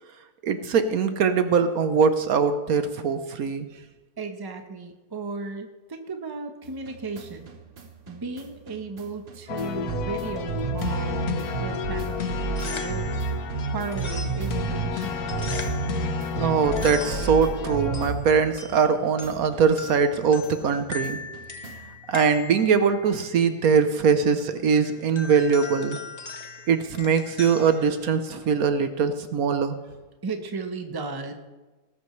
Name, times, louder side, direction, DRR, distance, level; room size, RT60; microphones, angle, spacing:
voice 1, 0.4-3.7 16.4-21.2 22.1-26.0 26.7-29.7, right 6 dB, 70° right, 9 dB, 1.3 m, -22 dB
voice 2, 4.2-7.5 8.1-11.3 11.6-15.7 30.2-31.3, right 4 dB, 20° right, 6 dB, 0.9 m, -35 dB
sound 1, 6.6-18.9 19.2-22.0, right 5 dB, 45° right, 1.3 m, -33 dB
sound 2, 9.5-18.1, left 7 dB, 75° left, 1.4 m, -32 dB
sound 3, 12.4-28.6, left 4 dB, 35° left, 0.8 m, -41 dB
19.0 x 12.5 x 3.2 m, 1.2 s
omnidirectional pair, 1.6 m